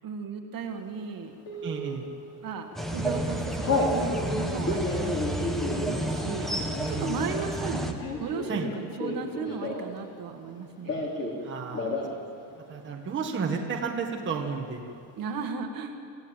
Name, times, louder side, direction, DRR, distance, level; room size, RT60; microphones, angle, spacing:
voice 1, 0.0-1.3 2.4-6.5 6.9-11.0 15.2-15.9, right 5 dB, 45° right, 4 dB, 1.9 m, -36 dB
Telephone, 1.5-2.0 2.5-2.8 3.1-4.0 4.5-10.0 10.3-11.4 11.7-12.1 12.4-12.5 12.8-13.4, left 2 dB, 30° left, 4.1 m, -32 dB
voice 2, 1.6-2.1 6.8-7.2 8.5-8.7 11.4-12.2 12.7-14.9, right 5 dB, 25° right, 0 dB, 1.7 m, -32 dB
sound 1, 2.8-7.9, right 1 dB, ahead, 1.3 m, -31 dB
26.0 x 16.0 x 9.1 m, 2.4 s
cardioid pair, 175°, 47 cm